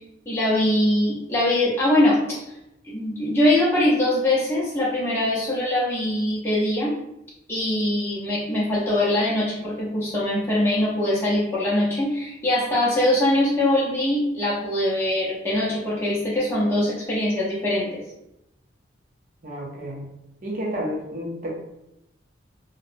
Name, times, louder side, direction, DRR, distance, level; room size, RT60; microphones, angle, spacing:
voice 1, 0.3-2.4 2.9-6.9 7.5-17.9, left 1 dB, 15° left, -7 dB, 0.6 m, -22 dB
voice 2, 19.4-20.1 20.4-21.5, equal, 45° right, -2 dB, 0.5 m, -30 dB
2.6 x 2.1 x 2.5 m, 0.84 s
head